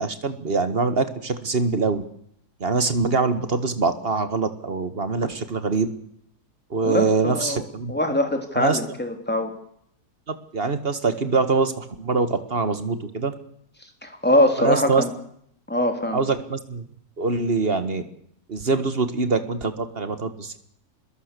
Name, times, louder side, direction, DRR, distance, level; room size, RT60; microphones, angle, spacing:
voice 1, 0.0-2.0 2.6-5.9 6.7-7.9 8.6-8.8 10.3-13.4 14.6-15.0 16.1-16.9 17.2-18.0 18.5-20.6, right 4 dB, 40° right, 10 dB, 1.9 m, -24 dB
voice 2, 6.8-9.5 14.0-15.1 15.7-16.2, left 1 dB, 5° left, 4 dB, 3.3 m, -23 dB
24.5 x 21.0 x 6.9 m, 0.70 s
omnidirectional pair, 1.6 m